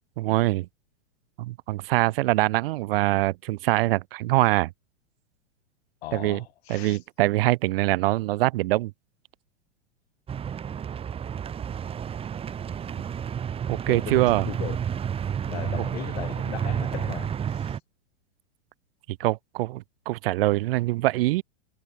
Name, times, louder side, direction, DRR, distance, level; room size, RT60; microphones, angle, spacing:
voice 1, 0.2-0.7 1.4-4.7 6.1-6.4 6.7-8.9 13.7-14.5 19.2-21.4, right 18 dB, 55° right, 2.1 m, -24 dB
voice 2, 6.0-7.0 13.8-14.8 15.5-17.8, left 15 dB, 60° left, 6.1 m, -38 dB
sound 1, 10.3-17.8, right 8 dB, 15° right, 2.1 m, -31 dB
hypercardioid pair, 145°, 35 cm